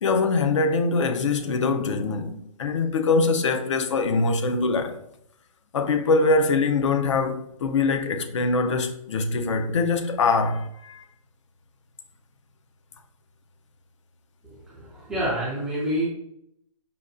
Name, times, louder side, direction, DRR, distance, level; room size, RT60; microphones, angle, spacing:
voice 1, 0.0-5.0 5.7-11.1, left 3 dB, 55° left, 0.4 m, -23 dB
voice 2, 14.7-16.0, equal, 5° right, 0.3 m, -27 dB
5.3 x 2.3 x 2.5 m
hypercardioid pair, 160°, 18 cm